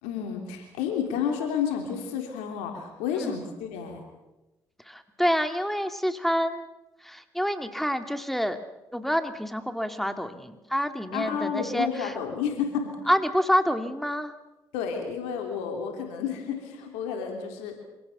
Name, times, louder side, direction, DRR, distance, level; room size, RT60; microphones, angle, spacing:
voice 1, 0.0-4.0 11.1-13.0 14.7-17.8, left 7 dB, 90° left, 3 dB, 3.6 m, -31 dB
voice 2, 4.9-6.7 7.0-8.6 8.9-12.1 13.1-14.3, equal, ahead, 9 dB, 2.3 m, -27 dB
26.0 x 18.0 x 6.8 m, 1.0 s
supercardioid pair, 60°, 11 cm